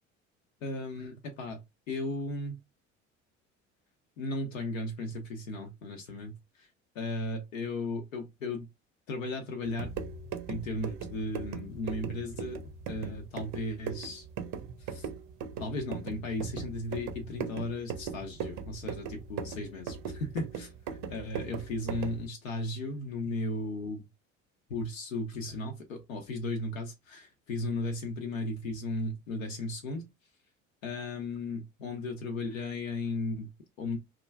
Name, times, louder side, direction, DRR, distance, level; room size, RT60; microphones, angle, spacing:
voice 1, 0.6-1.6 1.9-2.6 4.2-6.7 6.9-8.7 9.1-9.9 10.5-12.6 12.9-14.3 14.8-15.1 15.6-24.0 24.7-30.1 30.8-33.5 33.8-34.0, left 2 dB, 85° left, 0.6 m, -35 dB
sound 1, 9.6-22.3, right 6 dB, 55° right, 0.6 m, -39 dB
2.3 x 2.1 x 3.2 m
figure-of-eight pair, 60°, 39 cm